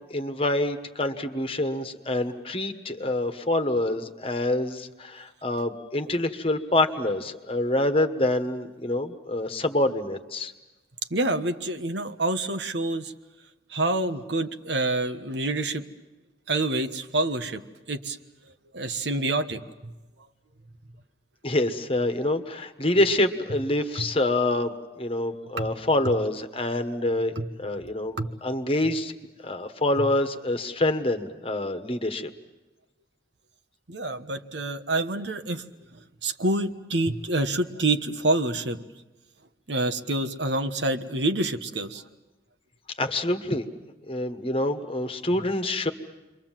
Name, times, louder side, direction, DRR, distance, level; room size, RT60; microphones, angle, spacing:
voice 1, 0.0-10.5 21.4-27.3 27.6-29.1 29.4-32.3 43.0-43.6 44.1-45.9, left 1 dB, 30° left, 7 dB, 1.4 m, -26 dB
voice 2, 11.1-13.1 13.7-15.8 16.5-18.2 18.7-19.9 23.9-24.1 25.6-25.7 26.0-26.2 27.4-27.5 28.2-28.3 30.0-30.1 33.9-35.6 35.9-38.8 39.7-42.0, right 2 dB, 80° right, 7 dB, 1.3 m, -27 dB
29.5 x 23.0 x 7.6 m, 1.1 s
head